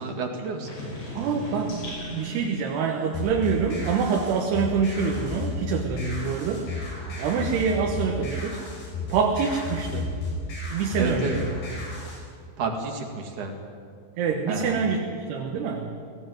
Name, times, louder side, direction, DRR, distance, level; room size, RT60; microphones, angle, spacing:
voice 1, 0.0-1.0 11.0-11.3 12.6-13.6 14.5-14.9, right 4 dB, 55° right, 2 dB, 3.2 m, -31 dB
sound 1, 0.6-6.0 6.3-8.0, left 1 dB, 70° left, 8.1 m, -42 dB
voice 2, 1.1-6.9 7.2-8.6 9.1-10.1 10.7-11.4 14.2-15.9, right 5 dB, 80° right, 1 dB, 3.5 m, -26 dB
sound 2, 3.1-12.2, left 2 dB, 85° left, 7.5 m, -33 dB
19.5 x 16.0 x 9.2 m, 2.3 s
omnidirectional pair, 4.8 m